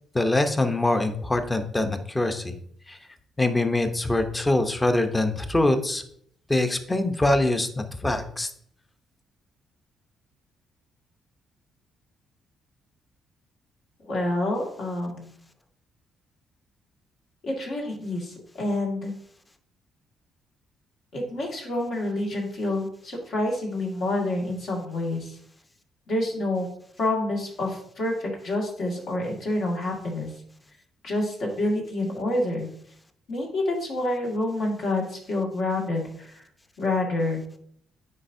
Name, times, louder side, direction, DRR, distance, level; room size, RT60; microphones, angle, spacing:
voice 1, 0.1-2.6 2.9-3.0 3.4-6.0 6.5-8.5, left 2 dB, 15° left, 7 dB, 0.7 m, -24 dB
voice 2, 14.0-15.3 17.4-19.1 21.1-25.4 26.1-26.7 27.0-30.3 31.0-32.7 33.3-36.3 36.8-37.4, left 2 dB, 65° left, -1 dB, 1.9 m, -28 dB
9.5 x 4.3 x 2.6 m, 0.65 s
cardioid pair, 90°, 0 cm